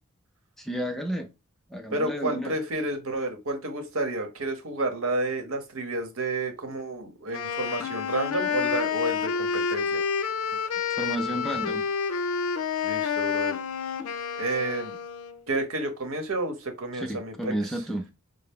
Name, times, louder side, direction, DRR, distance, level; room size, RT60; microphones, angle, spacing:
voice 1, 0.6-1.3 1.7-2.5 10.9-11.9 17.1-18.1, right 1 dB, ahead, 0.4 m, -31 dB
voice 2, 1.9-10.0 12.8-13.5 14.4-14.9 15.5-17.5, right 2 dB, 70° right, 1.0 m, -30 dB
Wind instrument woodwind instrument, 7.3-15.4, left 6 dB, 80° left, 0.5 m, -29 dB
5.4 x 2.0 x 3.4 m
head